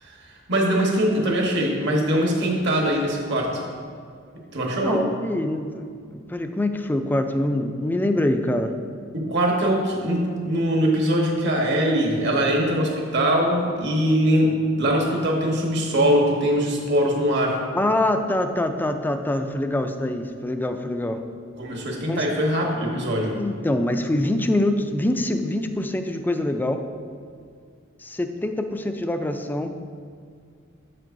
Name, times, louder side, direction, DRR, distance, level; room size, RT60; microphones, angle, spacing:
voice 1, 0.0-3.7 4.5-5.1 9.1-17.6 21.6-23.4, equal, 60° right, 0 dB, 1.2 m, -22 dB
voice 2, 4.8-5.8 6.1-8.7 17.7-21.2 22.1-22.2 23.4-26.8 28.0-29.7, left 1 dB, 10° left, 7 dB, 0.3 m, -24 dB
7.5 x 7.4 x 2.6 m, 2.2 s
head